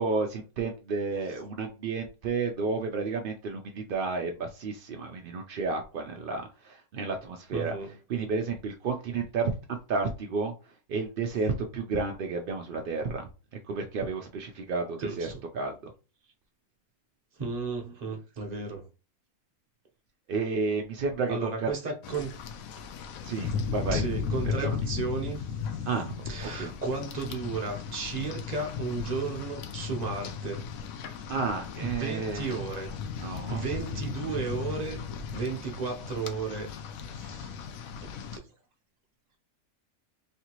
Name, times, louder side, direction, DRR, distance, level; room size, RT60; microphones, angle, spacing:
voice 1, 0.0-7.7 8.1-10.5 10.9-13.3 13.7-15.7 20.3-21.7 23.2-24.0 24.6-24.8 25.8-26.1 26.4-26.7 31.3-32.6 33.2-33.6, right 4 dB, 70° right, 0.5 m, -31 dB
voice 2, 7.5-8.0 15.0-15.4 17.3-18.9 21.3-22.3 23.9-25.6 26.3-30.7 31.8-35.0 35.3-36.7 37.1-37.6 38.0-38.4, right 4 dB, 35° right, 0.7 m, -34 dB
Rain, 22.0-38.4, left 6 dB, 75° left, 1.0 m, -36 dB
3.3 x 2.7 x 2.9 m
omnidirectional pair, 1.5 m